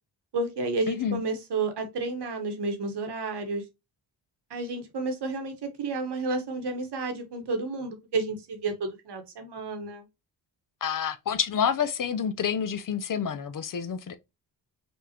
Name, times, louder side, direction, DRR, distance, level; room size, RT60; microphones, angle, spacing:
voice 1, 0.3-3.6 4.5-10.0, right 3 dB, 65° right, 1.2 m, -31 dB
voice 2, 0.9-1.2 10.8-14.2, left 7 dB, 50° left, 0.6 m, -28 dB
5.2 x 2.4 x 2.8 m
cardioid pair, 80°, 44 cm